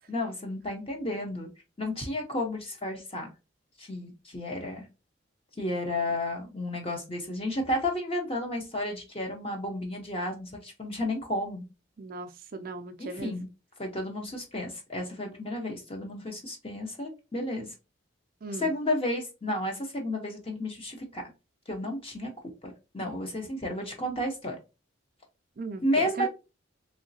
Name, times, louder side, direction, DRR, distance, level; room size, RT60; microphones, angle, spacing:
voice 1, 0.1-1.5 1.8-3.3 3.8-4.9 5.6-11.6 13.0-13.5 13.8-17.7 18.6-21.2 21.7-22.3 22.6-24.6 25.8-26.3, left 1 dB, 30° left, 1.1 m, -32 dB
voice 2, 12.0-13.4 18.4-18.7 25.6-26.3, right 3 dB, 45° right, 0.4 m, -38 dB
3.6 x 3.1 x 2.7 m
head